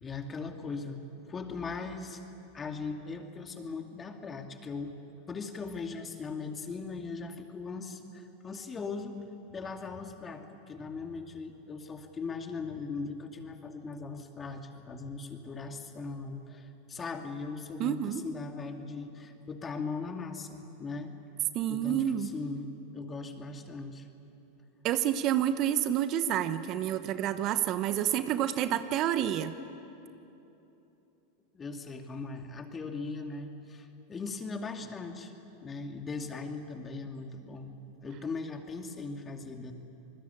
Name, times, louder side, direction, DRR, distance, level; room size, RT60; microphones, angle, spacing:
voice 1, 0.0-2.2 2.5-5.0 5.3-9.2 9.5-21.1 21.7-24.1 31.5-35.3 35.6-37.7 38.0-39.7, left 4 dB, 25° left, 5 dB, 2.4 m, -39 dB
voice 2, 17.8-18.2 21.5-22.3 24.8-29.5, right 11 dB, 45° right, 11 dB, 1.0 m, -29 dB
25.5 x 20.5 x 8.5 m, 3.0 s
hypercardioid pair, 95°, 0 cm